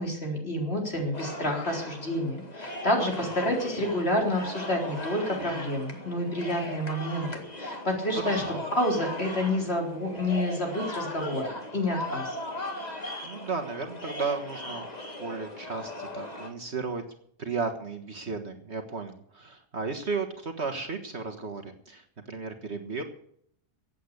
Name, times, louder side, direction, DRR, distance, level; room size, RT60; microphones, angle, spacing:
voice 1, 0.0-7.3 7.6-8.4 8.8-11.4 11.7-12.4, left 1 dB, 40° left, 1 dB, 4.2 m, -29 dB
sound 1, 1.1-16.5, left 1 dB, 25° left, 2.1 m, -38 dB
voice 2, 3.0-3.3 8.2-8.6 13.2-14.9 15.2-17.0 17.4-23.0, right 4 dB, 45° right, 6 dB, 1.7 m, -34 dB
15.5 x 8.5 x 8.2 m, 0.65 s
omnidirectional pair, 1.6 m